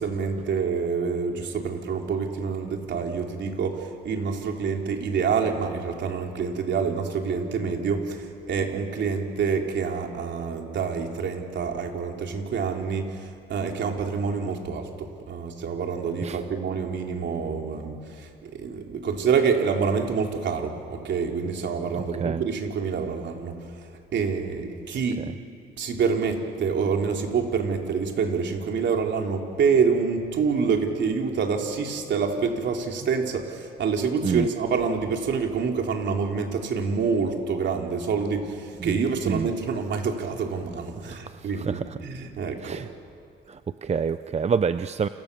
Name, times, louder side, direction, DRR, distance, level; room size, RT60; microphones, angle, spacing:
voice 1, 0.0-23.7 24.1-25.2 25.8-42.8, right 5 dB, 65° right, 2 dB, 3.7 m, -27 dB
voice 2, 22.0-22.4 34.2-34.5 38.8-39.0 39.2-39.5 41.1-42.0 42.6-42.9 43.5-45.1, right 6 dB, 35° right, 12 dB, 0.7 m, -28 dB
29.0 x 28.0 x 7.0 m, 2.4 s
cardioid pair, 90°, 20 cm